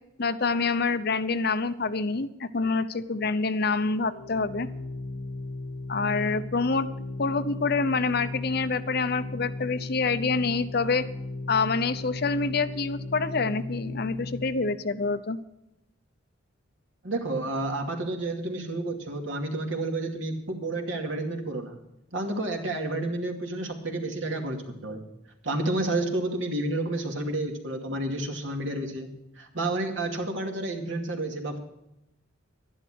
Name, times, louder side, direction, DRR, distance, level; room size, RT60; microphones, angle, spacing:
voice 1, 0.2-4.7 5.9-6.9 7.2-11.1 11.5-15.4, left 4 dB, 55° left, 12 dB, 0.8 m, -26 dB
Organ, 4.0-14.8, left 2 dB, 80° left, 1.4 m, -36 dB
voice 2, 17.0-21.8 22.1-25.0 25.4-29.1 29.4-31.6, right 2 dB, 80° right, 2 dB, 2.4 m, -30 dB
12.0 x 11.0 x 6.2 m, 0.87 s
head